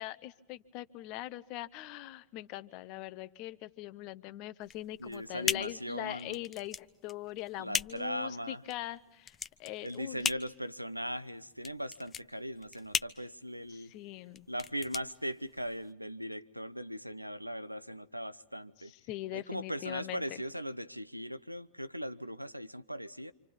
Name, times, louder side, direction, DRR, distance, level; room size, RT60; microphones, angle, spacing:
voice 1, 0.0-10.3 13.7-14.5 18.8-20.2, left 16 dB, 45° left, 1.2 m, -42 dB
sound 1, 4.6-15.9, left 7 dB, 20° left, 0.8 m, -39 dB
voice 2, 5.0-6.4 7.6-8.6 9.8-13.9 14.5-18.9 19.3-23.3, equal, 90° right, 0.9 m, -39 dB
28.0 x 27.0 x 5.5 m
figure-of-eight pair, 90°, 0 cm